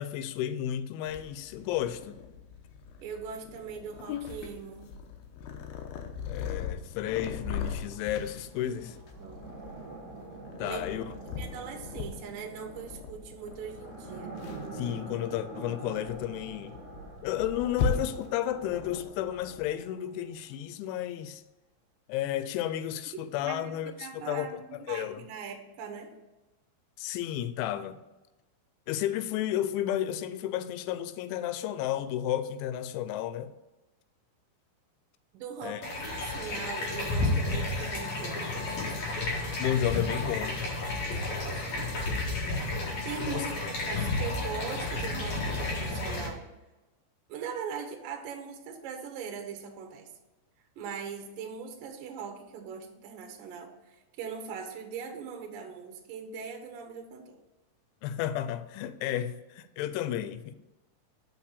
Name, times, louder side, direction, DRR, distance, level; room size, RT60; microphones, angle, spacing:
voice 1, 0.0-2.2 6.3-9.0 10.6-11.0 14.7-16.8 17.2-21.4 22.1-25.2 27.0-28.0 28.9-33.5 35.6-35.8 39.6-40.6 43.2-43.4 58.0-60.6, left 11 dB, 90° left, 3.0 m, -32 dB
Purr, 1.1-19.8, left 5 dB, 75° left, 2.5 m, -39 dB
voice 2, 3.0-4.9 8.6-9.5 10.6-14.4 23.4-26.1 35.3-38.7 41.1-41.9 43.0-46.4 47.3-50.1 50.8-57.4, right 6 dB, 75° right, 2.1 m, -41 dB
sound 1, 7.0-20.8, right 3 dB, 35° right, 3.0 m, -46 dB
sound 2, 35.8-46.3, left 2 dB, 55° left, 2.4 m, -31 dB
6.0 x 5.9 x 6.6 m
omnidirectional pair, 5.3 m